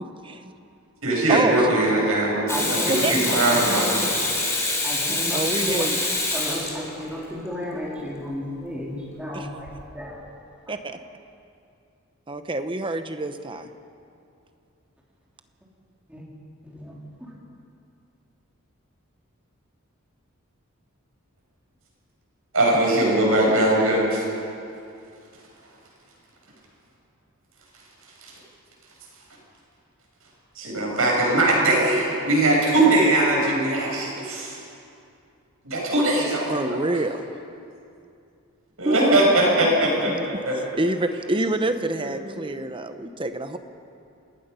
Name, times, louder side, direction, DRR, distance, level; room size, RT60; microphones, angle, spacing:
voice 1, 0.2-0.5 1.3-2.4 2.9-3.1 5.3-6.0 9.3-9.4 10.7-10.8 12.3-13.7 36.5-37.3 38.8-39.3 40.0-40.3 40.5-43.6, right 2 dB, 25° right, 8 dB, 1.0 m, -27 dB
voice 2, 1.0-2.8 3.1-4.0 22.5-24.2 30.6-34.6 35.6-36.8 38.8-40.1 40.4-40.6 42.0-42.2, right 1 dB, 75° right, -3 dB, 7.7 m, -20 dB
Water tap faucet / Sink (filling or washing), 2.5-7.2 9.7-9.8, left 2 dB, 15° left, 3.8 m, -26 dB
voice 3, 2.5-4.1 4.8-5.9 6.3-10.2 10.7-10.8 16.1-16.2 16.6-17.4, equal, 5° right, -5 dB, 4.0 m, -33 dB
27.5 x 19.0 x 5.7 m, 2.5 s
head